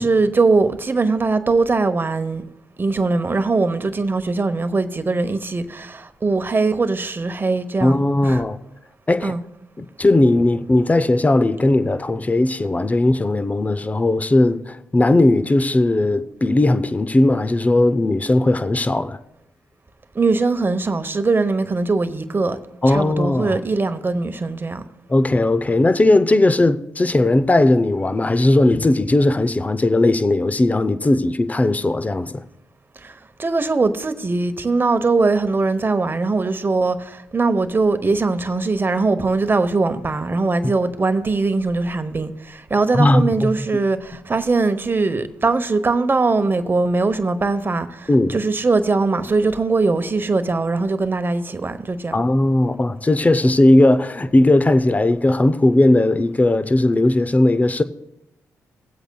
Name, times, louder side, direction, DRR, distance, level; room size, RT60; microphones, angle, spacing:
voice 1, 0.0-2.4 2.8-8.4 9.2-9.4 20.1-22.6 22.9-24.8 33.0-33.1 33.4-52.1, right 3 dB, 35° right, 0.9 m, -21 dB
voice 2, 7.8-8.6 9.1-9.3 9.8-19.2 22.8-23.6 25.1-32.4 42.9-43.5 48.1-48.3 52.1-57.8, left 2 dB, 25° left, 0.6 m, -17 dB
19.5 x 7.9 x 2.3 m
supercardioid pair, 55°, 7 cm